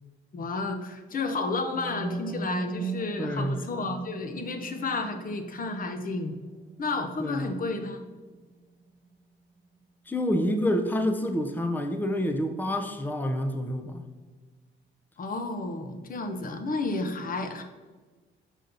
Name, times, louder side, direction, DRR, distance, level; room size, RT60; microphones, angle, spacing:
voice 1, 0.3-6.4 6.8-8.0 15.2-17.6, left 3 dB, 45° left, 6 dB, 0.9 m, -31 dB
sound 1, 1.1-9.1, right 3 dB, 35° right, 0.8 m, -40 dB
voice 2, 3.2-3.6 7.2-7.5 10.1-14.0, equal, 10° left, 6 dB, 0.7 m, -28 dB
6.4 x 5.3 x 4.0 m, 1.3 s
cardioid pair, 90°, 20 cm